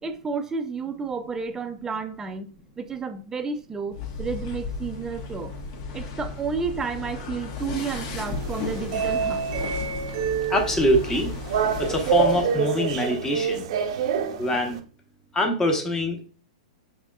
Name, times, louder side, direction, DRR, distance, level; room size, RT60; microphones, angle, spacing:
voice 1, 0.0-2.5 2.8-5.5 5.9-9.5, right 5 dB, 15° right, 0.5 m, -31 dB
sound 1, 3.9-12.5, left 4 dB, 50° left, 0.9 m, -34 dB
sound 2, 7.8-14.8, right 7 dB, 55° right, 0.6 m, -27 dB
voice 2, 10.5-11.3 11.8-13.7 14.4-14.8 15.3-16.3, left 1 dB, 15° left, 0.9 m, -24 dB
5.0 x 3.5 x 2.2 m
hypercardioid pair, 130°, 4 cm